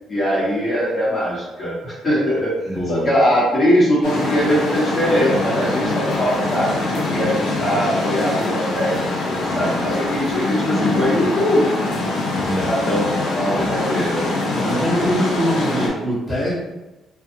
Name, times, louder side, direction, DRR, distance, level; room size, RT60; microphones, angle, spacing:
voice 1, 0.1-2.5 2.9-8.9 9.3-11.7 12.6-14.3 14.7-15.2, equal, 35° left, -8 dB, 1.1 m, -21 dB
voice 2, 2.7-3.1 9.4-9.9 12.3-13.1 13.5-13.8 14.5-16.5, equal, 5° left, -10 dB, 1.3 m, -24 dB
sound 1, 4.0-15.9, left 2 dB, 85° left, 0.6 m, -23 dB
2.7 x 2.3 x 2.6 m, 1.0 s
cardioid pair, 90°, 0 cm